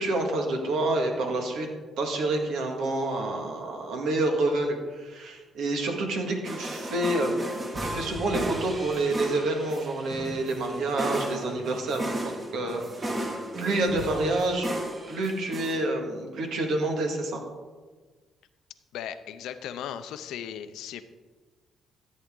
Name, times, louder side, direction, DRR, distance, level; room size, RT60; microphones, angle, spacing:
voice 1, 0.0-1.7 2.0-7.6 7.8-13.2 13.6-14.7 15.1-17.4, right 2 dB, 80° right, 2 dB, 2.0 m, -28 dB
sound 1, 6.4-15.8, right 1 dB, 30° right, 2.1 m, -35 dB
voice 2, 18.9-21.0, left 9 dB, 85° left, 11 dB, 0.6 m, -37 dB
13.5 x 8.4 x 3.8 m, 1.4 s
cardioid pair, 90°, 0 cm